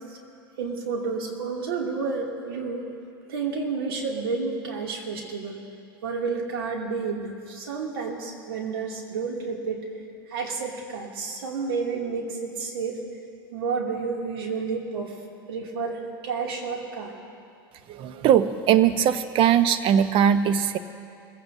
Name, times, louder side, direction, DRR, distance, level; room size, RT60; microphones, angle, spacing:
voice 1, 0.6-2.9 3.3-5.6 6.0-9.9 10.3-13.0 13.5-15.1 15.5-17.1, right 4 dB, 75° right, -1 dB, 2.5 m, -30 dB
voice 2, 17.9-20.8, right 9 dB, 45° right, 12 dB, 0.8 m, -20 dB
22.0 x 15.5 x 2.7 m, 2.4 s
hypercardioid pair, 90°, 12 cm